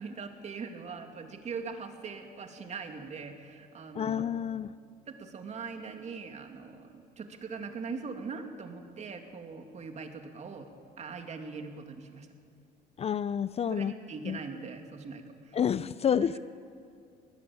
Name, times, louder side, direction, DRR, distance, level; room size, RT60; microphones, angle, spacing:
voice 1, 0.0-4.3 5.1-10.7 11.0-12.3 13.6-15.6 16.2-16.4, right 5 dB, 40° right, 5 dB, 2.7 m, -41 dB
voice 2, 3.9-4.7 13.0-13.9 14.2-14.4 15.5-16.4, left 8 dB, 40° left, 16 dB, 0.5 m, -29 dB
20.5 x 18.0 x 8.8 m, 2.3 s
cardioid pair, 110°, 17 cm